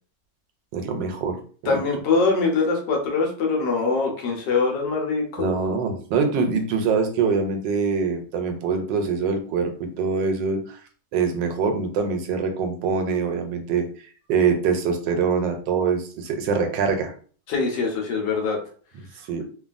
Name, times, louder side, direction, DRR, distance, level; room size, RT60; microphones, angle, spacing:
voice 1, 0.7-1.8 5.4-10.8 11.1-13.9 14.3-17.1 19.3-19.4, right 5 dB, 85° right, 6 dB, 1.3 m, -24 dB
voice 2, 1.7-5.5 17.5-18.6, left 4 dB, 80° left, 1 dB, 1.4 m, -23 dB
3.2 x 2.2 x 2.4 m, 0.43 s
omnidirectional pair, 1.9 m